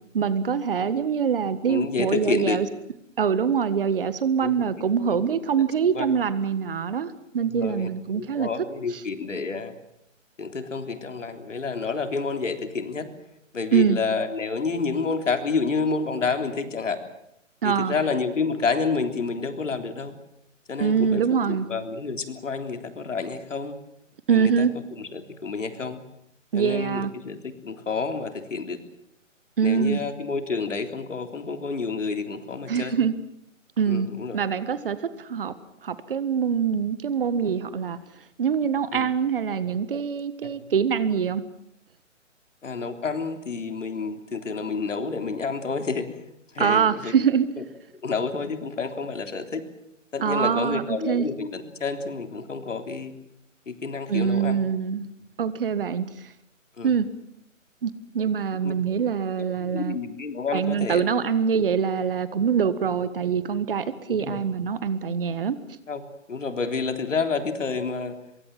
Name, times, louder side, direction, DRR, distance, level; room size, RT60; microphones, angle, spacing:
voice 1, 0.1-2.7 3.2-8.5 13.7-14.0 17.6-17.9 20.8-21.7 24.3-24.7 26.5-27.1 29.6-30.0 32.7-33.1 33.8-34.1 34.3-35.5 35.8-38.0 38.4-41.4 46.6-47.5 50.2-51.3 54.1-55.1 55.4-56.1 56.8-57.1 57.8-60.0 60.5-65.6, right 7 dB, 45° right, 15 dB, 1.6 m, -24 dB
voice 2, 1.7-2.6 4.4-4.5 5.9-6.1 7.5-7.9 8.2-9.7 10.4-13.1 13.5-17.0 17.6-20.2 20.7-21.2 21.5-23.7 24.3-24.7 25.0-26.0 26.5-28.8 29.6-33.0 33.9-34.4 38.9-39.1 40.4-40.5 42.6-46.2 46.5-47.1 48.0-49.6 50.1-53.1 53.7-54.6 56.8-56.9 58.6-58.7 59.6-61.1 64.1-64.4 65.9-66.0 66.3-68.2, left 4 dB, 70° left, 7 dB, 3.5 m, -29 dB
24.0 x 23.0 x 7.7 m, 0.80 s
figure-of-eight pair, 150°, 39 cm